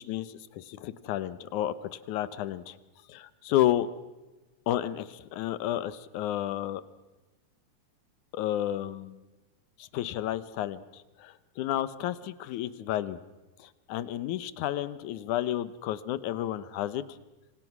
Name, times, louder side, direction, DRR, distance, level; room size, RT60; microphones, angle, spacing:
voice 1, 0.0-2.8 3.1-3.9 4.7-6.8 8.3-9.2 9.8-13.2 13.6-17.0, left 12 dB, 75° left, 16 dB, 2.3 m, -31 dB
27.0 x 25.0 x 6.1 m, 1.1 s
omnidirectional pair, 3.6 m